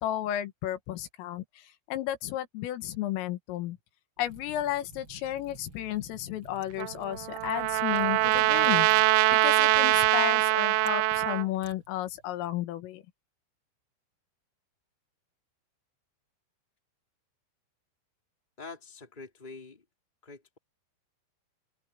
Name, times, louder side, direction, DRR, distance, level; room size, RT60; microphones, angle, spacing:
voice 1, 0.0-3.8 4.2-8.9 9.4-13.0, left 13 dB, 85° left, 4.2 m, -33 dB
Liquid, 4.2-12.5, right 2 dB, 25° right, 8.1 m, -52 dB
Trumpet, 6.8-11.5, right 20 dB, 85° right, 2.6 m, -23 dB
voice 2, 18.6-19.8 20.2-20.6, left 4 dB, 10° left, 3.1 m, -45 dB
open air
omnidirectional pair, 5.7 m